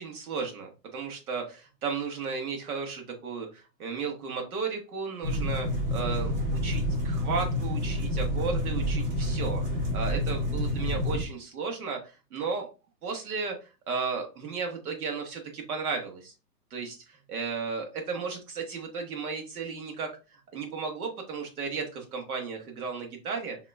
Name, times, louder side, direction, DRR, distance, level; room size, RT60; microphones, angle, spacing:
voice 1, 0.0-9.6 9.9-12.7 13.0-13.5 13.9-16.3 16.7-23.6, right 5 dB, 65° right, 2 dB, 1.5 m, -34 dB
sound 1, 5.2-11.2, left 1 dB, 35° right, 1.4 m, -28 dB
5.8 x 2.9 x 2.3 m, 0.31 s
hypercardioid pair, 175°, 49 cm